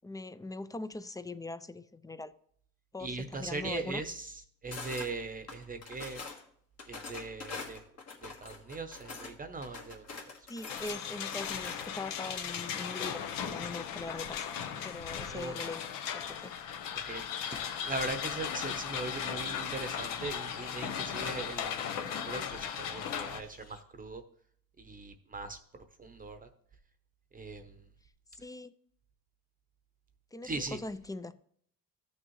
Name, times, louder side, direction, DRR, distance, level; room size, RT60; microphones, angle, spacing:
voice 1, 0.0-2.3 2.9-4.0 10.5-14.5 14.8-15.8 16.1-16.5 28.3-28.7 30.3-31.3, left 2 dB, 10° left, 0.3 m, -41 dB
voice 2, 3.0-4.3 4.6-6.2 6.9-7.8 8.2-10.0 15.3-15.5 16.9-17.3 17.6-24.2 24.8-26.5 27.3-27.8 30.4-30.8, right 3 dB, 25° right, 0.7 m, -40 dB
sound 1, 4.7-5.1 5.5-6.4 6.8-9.3 9.6-12.1, left 4 dB, 50° left, 1.6 m, -44 dB
sound 2, 10.7-23.4, left 8 dB, 85° left, 0.9 m, -37 dB
sound 3, 16.7-23.8, left 3 dB, 25° left, 1.4 m, -56 dB
13.5 x 6.3 x 3.1 m
cardioid pair, 105°, 33 cm